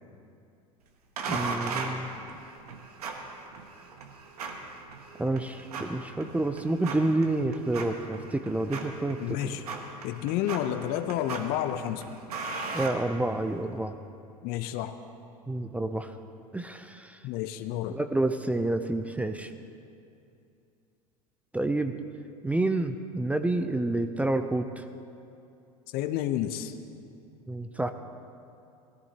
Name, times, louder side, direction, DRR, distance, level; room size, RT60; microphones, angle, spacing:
sound 1, 1.2-13.7, right 4 dB, 75° right, 1.3 m, -38 dB
voice 1, 1.3-2.1 5.2-9.2 12.7-13.9 15.5-16.1 16.5-17.2 17.9-19.5 21.5-21.9 22.4-24.8 27.5-27.9, right 2 dB, 5° right, 8 dB, 0.5 m, -29 dB
voice 2, 9.2-9.7 10.0-12.1 14.4-15.0 17.2-18.0 25.9-26.8, left 12 dB, 50° left, 9 dB, 0.7 m, -30 dB
17.5 x 14.5 x 2.9 m, 2.6 s
hypercardioid pair, 80°, 19 cm